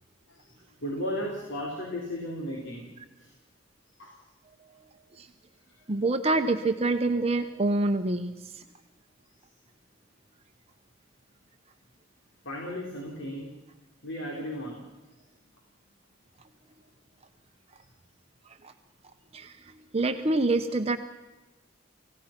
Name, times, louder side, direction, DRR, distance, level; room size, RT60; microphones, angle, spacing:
voice 1, 0.8-2.9 3.2-3.3 4.0-4.2 5.7-5.8 12.4-13.5 14.0-14.8, equal, 70° left, -1 dB, 4.0 m, -35 dB
voice 2, 5.9-8.6 18.6-18.7 19.3-21.0, right 2 dB, 30° right, 6 dB, 0.9 m, -26 dB
28.0 x 17.0 x 6.0 m, 1.1 s
head